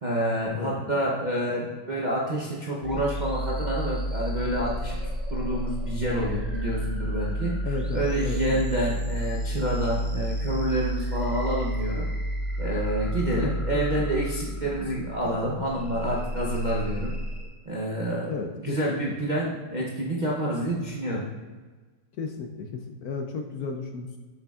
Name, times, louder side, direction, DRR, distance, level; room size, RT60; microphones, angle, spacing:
voice 1, 0.0-5.0 5.3-7.5 7.9-12.0 12.6-17.1 17.7-18.3 18.6-21.2, right 1 dB, 40° right, -5 dB, 0.6 m, -28 dB
voice 2, 0.5-0.8 7.6-8.6 13.4-14.1 18.3-18.8 22.2-24.2, left 4 dB, 70° left, 4 dB, 1.0 m, -34 dB
sound 1, 2.8-17.5, equal, ahead, 0.3 m, -31 dB
7.7 x 6.3 x 2.4 m, 1.4 s
omnidirectional pair, 1.9 m